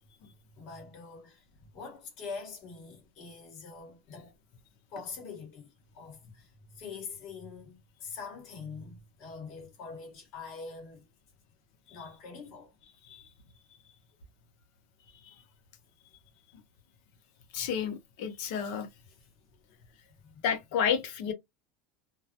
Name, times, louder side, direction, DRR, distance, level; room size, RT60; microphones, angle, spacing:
voice 1, 0.6-4.3 4.9-11.1 11.9-12.7 19.1-19.3 20.1-20.4, left 5 dB, 45° left, 1.1 m, -44 dB
voice 2, 17.5-18.9 20.4-21.3, left 8 dB, 65° left, 0.6 m, -31 dB
2.2 x 2.0 x 2.7 m
supercardioid pair, 160°, 0 cm